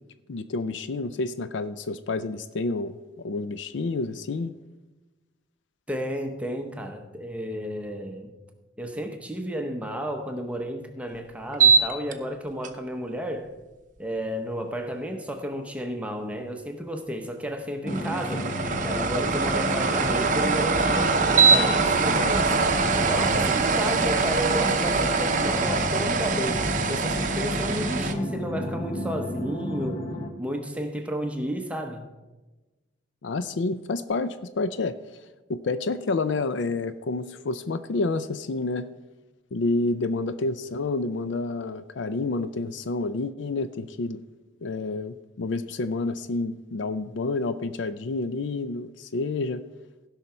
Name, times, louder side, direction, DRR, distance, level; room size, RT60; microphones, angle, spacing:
voice 1, 0.3-3.0 3.2-4.5 33.2-35.0 35.5-38.9 39.5-44.2 44.6-49.6, left 3 dB, 70° left, 13 dB, 0.4 m, -29 dB
voice 2, 5.9-8.3 8.8-13.5 14.0-18.5 18.8-22.5 23.1-30.1 30.4-32.1, equal, 5° right, 4 dB, 0.7 m, -32 dB
sound 1, 11.5-12.1 12.6-12.7 17.9-28.1, right 4 dB, 40° right, 0.7 m, -23 dB
sound 2, 17.8-30.3, left 1 dB, 30° left, 0.9 m, -32 dB
16.0 x 5.7 x 4.3 m, 1.1 s
head